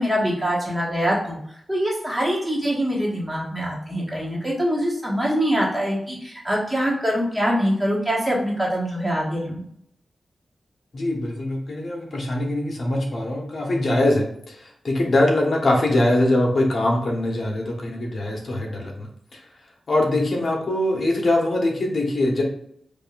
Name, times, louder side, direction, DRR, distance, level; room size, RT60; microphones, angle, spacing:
voice 1, 0.0-1.4 1.7-9.6, equal, 10° right, -5 dB, 1.3 m, -24 dB
voice 2, 10.9-14.5 14.8-19.1 19.9-22.4, left 1 dB, 55° left, 0 dB, 1.1 m, -22 dB
5.1 x 2.5 x 2.4 m, 0.70 s
wide cardioid pair, 85°, 0 cm